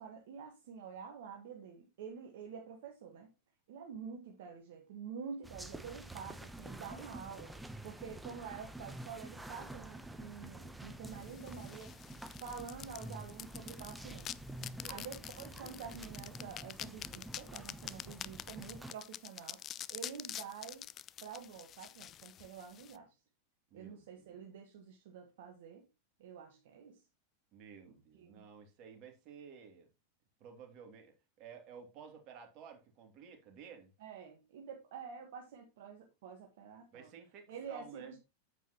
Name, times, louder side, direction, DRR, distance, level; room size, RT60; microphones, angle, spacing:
voice 1, 0.0-3.3 3.7-7.6 7.8-12.0 12.4-14.3 14.9-20.9 21.2-23.2 23.7-25.9 26.2-27.0 27.9-28.4 34.0-37.1 37.5-38.2, right 6 dB, 55° right, 1.7 m, -48 dB
sound 1, 5.4-18.9, right 1 dB, 5° right, 0.9 m, -48 dB
sound 2, 11.1-23.0, left 11 dB, 30° left, 0.4 m, -47 dB
voice 2, 23.7-24.4 27.5-29.9 30.4-33.9 36.9-38.1, right 7 dB, 40° right, 2.7 m, -54 dB
9.0 x 8.4 x 3.0 m
figure-of-eight pair, 90°, 0 cm